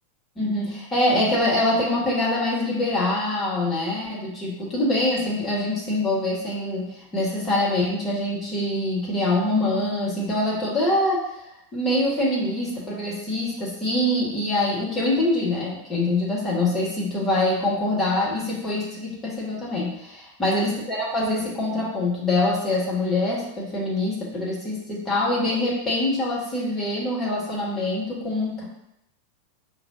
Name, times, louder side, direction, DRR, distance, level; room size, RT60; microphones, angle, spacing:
voice 1, 0.4-11.2 11.7-28.6, left 1 dB, 15° left, -6 dB, 1.5 m, -24 dB
5.2 x 2.5 x 2.6 m, 0.81 s
figure-of-eight pair, 90°, 0 cm